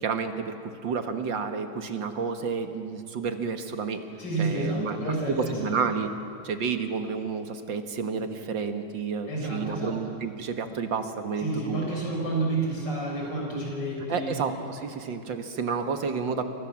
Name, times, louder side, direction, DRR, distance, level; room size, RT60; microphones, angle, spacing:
voice 1, 0.0-4.0 4.4-6.1 6.4-11.8 14.1-16.5, right 5 dB, 85° right, 6 dB, 2.3 m, -30 dB
voice 2, 4.2-5.8 9.3-10.0 11.4-14.4, right 2 dB, 70° left, -2 dB, 7.3 m, -30 dB
29.0 x 24.0 x 7.4 m, 2.6 s
omnidirectional pair, 2.0 m